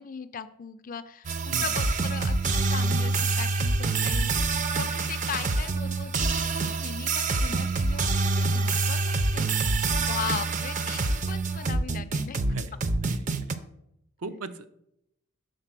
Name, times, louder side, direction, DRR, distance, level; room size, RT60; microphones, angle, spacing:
voice 1, 0.0-9.8 10.1-12.4, left 7 dB, 40° left, 12 dB, 0.4 m, -38 dB
sound 1, 1.2-13.5, right 3 dB, 35° right, 0.4 m, -26 dB
voice 2, 13.0-13.6 14.2-14.7, right 3 dB, 85° right, 10 dB, 0.6 m, -38 dB
6.6 x 4.0 x 6.0 m, 0.79 s
head